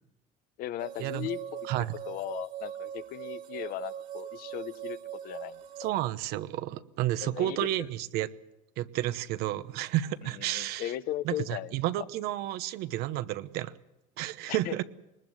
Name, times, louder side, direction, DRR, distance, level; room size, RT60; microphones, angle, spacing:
voice 1, 0.6-1.6 2.1-5.0 5.2-5.6 7.2-7.9 10.4-12.1 14.5-14.8, left 13 dB, 65° left, 14 dB, 0.9 m, -37 dB
sound 1, 0.8-5.9, right 10 dB, 55° right, 2.3 m, -41 dB
voice 2, 5.8-8.3 8.8-10.9 11.2-13.7 14.2-14.8, right 14 dB, 70° right, 13 dB, 1.0 m, -31 dB
21.5 x 20.0 x 7.9 m, 0.92 s
cardioid pair, 120°, 17 cm